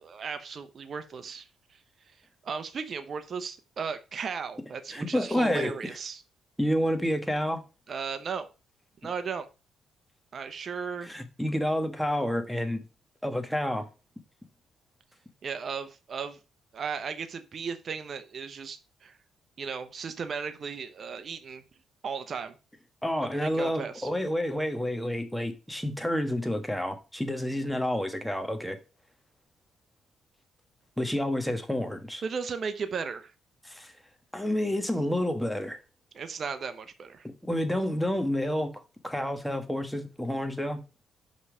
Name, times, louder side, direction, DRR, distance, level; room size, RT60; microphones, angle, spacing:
voice 1, 0.0-1.8 2.1-2.2 2.4-6.2 7.9-8.5 9.0-9.5 10.3-11.1 15.4-16.4 16.7-19.2 19.6-21.6 22.0-22.5 23.4-24.1 32.2-33.3 36.1-37.3, right 6 dB, 50° right, 0.8 m, -36 dB
voice 2, 4.9-6.0 6.6-7.6 11.0-12.8 13.2-13.9 23.0-28.8 31.0-32.2 33.6-33.9 34.3-35.8 37.2-40.8, left 1 dB, 5° left, 1.3 m, -29 dB
5.5 x 5.3 x 4.9 m
cardioid pair, 90°, 0 cm